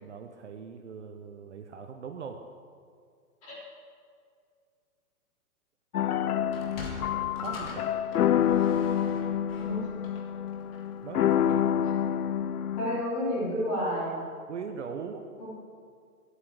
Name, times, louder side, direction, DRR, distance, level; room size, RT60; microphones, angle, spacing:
voice 1, 0.0-2.4 7.3-7.9 11.0-11.7 14.5-15.3, right 6 dB, 50° right, 5 dB, 0.8 m, -40 dB
sound 1, 5.9-13.0, left 9 dB, 70° left, 0.7 m, -27 dB
Sliding door, 6.4-11.0, left 3 dB, 40° left, 1.8 m, -44 dB
voice 2, 9.5-9.9 12.8-14.2 15.4-15.5, equal, 15° left, -9 dB, 4.0 m, -30 dB
11.5 x 8.4 x 7.5 m, 2.1 s
hypercardioid pair, 175°, 46 cm